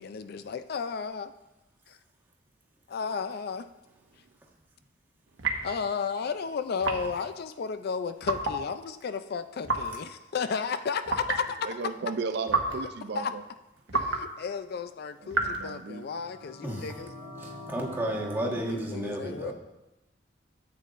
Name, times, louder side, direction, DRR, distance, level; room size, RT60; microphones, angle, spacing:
voice 1, 0.0-1.3 1.9-2.0 2.9-3.7 5.6-11.8 13.1-13.3 13.9-17.1 18.7-19.5, left 6 dB, 55° left, 11 dB, 0.4 m, -33 dB
sound 1, 5.4-5.8 6.8-7.2 8.2-8.6 9.6-10.0 11.1-11.4 12.5-12.9 13.9-14.2 15.3-15.6, right 3 dB, 80° right, 1.2 m, -29 dB
voice 2, 11.6-13.4 15.2-16.1, right 4 dB, 60° right, 8 dB, 0.5 m, -35 dB
sound 2, 16.0-18.6, left 1 dB, 80° left, 2.1 m, -43 dB
voice 3, 17.4-19.5, right 1 dB, 10° right, -2 dB, 1.4 m, -32 dB
13.0 x 8.3 x 2.5 m, 0.98 s
head